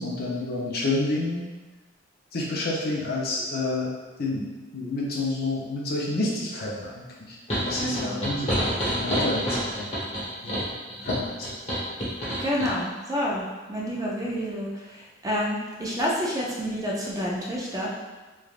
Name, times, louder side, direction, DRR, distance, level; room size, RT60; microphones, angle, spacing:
voice 1, 0.0-1.5 2.3-3.9 4.2-4.5 4.7-9.9 10.4-10.7 11.0-11.3, left 2 dB, 55° left, -4 dB, 0.6 m, -29 dB
sound 1, 7.5-12.7, equal, 35° left, 1.0 m, -28 dB
voice 2, 7.8-8.3 12.4-17.9, equal, 20° right, -4 dB, 0.4 m, -29 dB
3.3 x 2.4 x 2.4 m, 1.2 s
head